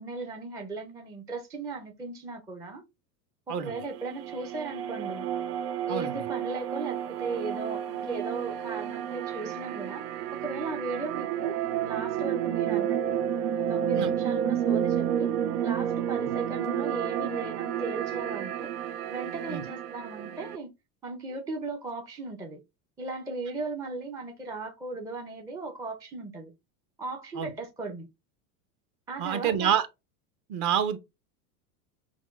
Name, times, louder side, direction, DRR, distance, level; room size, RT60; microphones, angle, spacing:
voice 1, 0.0-2.8 3.5-5.3 5.9-10.0 10.3-11.6 11.8-13.0 13.7-15.3 15.6-18.7 19.1-20.7 21.0-22.6 23.0-26.5 27.0-28.1 29.1-29.7, right 3 dB, 10° right, 0.4 m, -37 dB
sound 1, 3.7-20.6, right 9 dB, 90° right, 0.6 m, -31 dB
voice 2, 29.2-29.9 30.5-31.0, right 9 dB, 40° right, 0.7 m, -27 dB
6.0 x 2.2 x 2.3 m
supercardioid pair, 115°, 47 cm